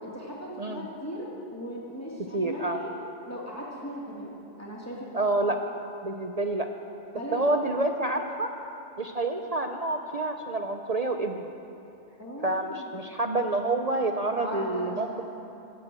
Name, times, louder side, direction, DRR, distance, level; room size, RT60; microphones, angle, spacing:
voice 1, 0.0-2.9 3.3-4.3 4.6-5.2 7.1-7.5 12.2-13.0 14.4-15.2, equal, 10° left, -4 dB, 2.5 m, -38 dB
voice 2, 2.3-2.8 5.1-5.6 6.0-6.7 7.3-8.5 9.0-11.5 12.4-15.2, right 2 dB, 45° right, 4 dB, 0.5 m, -28 dB
16.0 x 9.0 x 7.6 m, 2.9 s
omnidirectional pair, 1.3 m